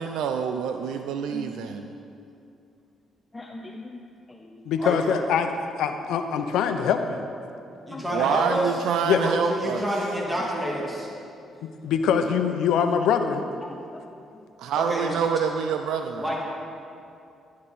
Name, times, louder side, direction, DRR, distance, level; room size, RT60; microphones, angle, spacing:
voice 1, 0.0-1.9 8.1-9.9 14.6-16.3, right 7 dB, 85° right, 6 dB, 0.5 m, -26 dB
voice 2, 3.3-4.0 4.3-4.6 7.9-8.0 13.6-14.0, left 2 dB, 20° left, 2 dB, 0.8 m, -40 dB
voice 3, 4.6-5.5 5.8-7.2 9.0-9.2 11.8-13.4, left 7 dB, 85° left, 7 dB, 0.8 m, -23 dB
voice 4, 7.9-8.7 9.1-11.1 14.8-15.1 16.2-16.4, equal, 10° right, -4 dB, 2.6 m, -28 dB
11.5 x 11.0 x 4.2 m, 2.6 s
cardioid pair, 90°, 0 cm